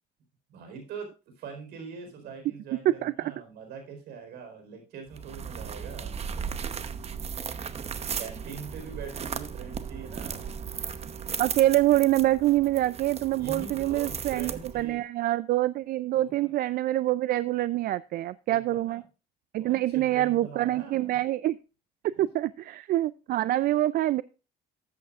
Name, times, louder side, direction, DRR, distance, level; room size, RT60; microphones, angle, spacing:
voice 1, 0.5-1.1 1.4-6.6 8.2-10.6 13.4-15.0 16.1-16.5 18.5-19.0 19.6-21.2, right 5 dB, 75° right, 5 dB, 4.3 m, -43 dB
voice 2, 2.9-3.3 11.4-19.0 19.5-21.6 22.0-24.2, right 15 dB, 60° right, 17 dB, 0.4 m, -25 dB
sound 1, 5.1-15.0, right 7 dB, 40° right, 0.9 m, -36 dB
13.0 x 8.5 x 2.4 m, 0.31 s
cardioid pair, 110°, 17 cm